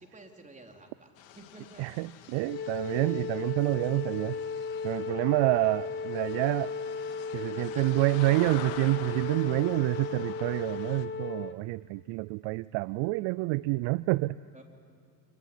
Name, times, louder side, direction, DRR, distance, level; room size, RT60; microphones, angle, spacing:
voice 1, 0.0-1.8 7.5-7.8 14.5-14.6, right 2 dB, 15° right, 2 dB, 4.2 m, -51 dB
sound 1, 1.2-11.0, left 10 dB, 65° left, 2.1 m, -47 dB
voice 2, 1.8-4.4 4.8-6.7 7.3-14.4, right 21 dB, 60° right, 19 dB, 0.5 m, -28 dB
Wind instrument woodwind instrument, 2.4-11.6, left 5 dB, 25° left, 0.7 m, -36 dB
26.5 x 20.0 x 9.9 m, 2.5 s
hypercardioid pair, 75°, 49 cm